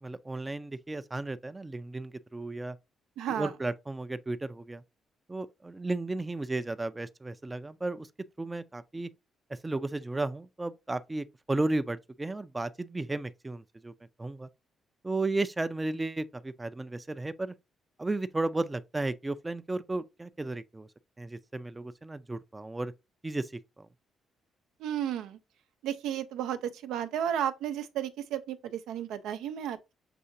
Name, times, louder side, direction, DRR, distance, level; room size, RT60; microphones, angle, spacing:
voice 1, 0.0-2.8 3.3-4.8 5.3-8.1 8.4-9.1 9.5-13.9 14.2-14.5 15.0-17.5 18.0-20.9 21.2-22.9 23.2-23.5 23.8-23.9, right 2 dB, 15° right, 0.4 m, -34 dB
voice 2, 3.2-3.5 24.8-25.4 25.8-29.9, right 10 dB, 85° right, 0.5 m, -33 dB
6.7 x 2.8 x 2.6 m
cardioid pair, 90°, 0 cm